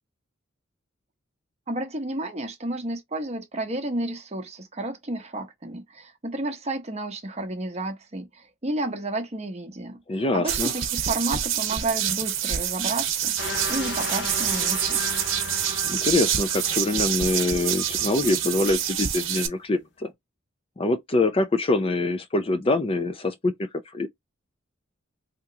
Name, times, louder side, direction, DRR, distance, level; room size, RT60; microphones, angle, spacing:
voice 1, 1.7-15.0, right 2 dB, 35° right, 0.8 m, -31 dB
voice 2, 10.1-10.7 15.8-20.1 20.8-23.5 23.9-24.1, left 2 dB, 30° left, 0.4 m, -24 dB
sound 1, 10.5-19.5, right 10 dB, 70° right, 0.8 m, -27 dB
sound 2, 13.4-19.6, left 3 dB, 60° left, 0.8 m, -36 dB
3.5 x 2.9 x 2.7 m
head